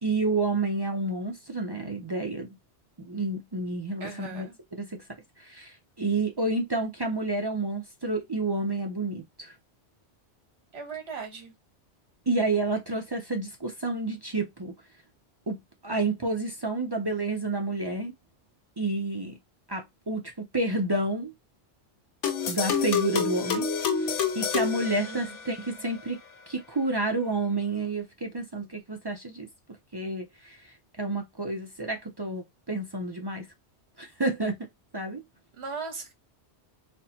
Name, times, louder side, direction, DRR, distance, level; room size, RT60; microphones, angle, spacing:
voice 1, 0.0-2.5 3.0-5.0 5.4-9.5 12.3-14.7 15.5-18.1 18.8-19.4 19.7-21.3 22.4-23.7 24.0-26.2 26.5-29.5 29.9-33.5 34.0-34.7 34.9-35.2, right 2 dB, 35° right, 0.4 m, -30 dB
voice 2, 4.0-4.5 10.7-11.5 25.0-25.4 35.5-36.1, right 4 dB, 65° right, 1.4 m, -38 dB
sound 1, 22.2-25.7, left 6 dB, 85° left, 1.0 m, -28 dB
4.2 x 2.1 x 2.8 m
omnidirectional pair, 1.2 m